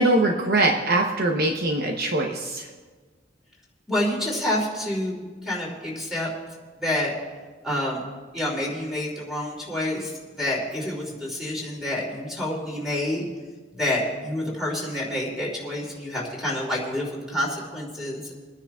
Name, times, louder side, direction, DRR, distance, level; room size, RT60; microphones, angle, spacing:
voice 1, 0.0-2.7, right 2 dB, 55° right, 2 dB, 0.9 m, -22 dB
voice 2, 3.9-6.3 6.8-7.1 7.6-8.0 8.3-13.2 13.7-18.3, left 1 dB, ahead, -4 dB, 2.9 m, -28 dB
29.0 x 10.0 x 2.4 m, 1.4 s
head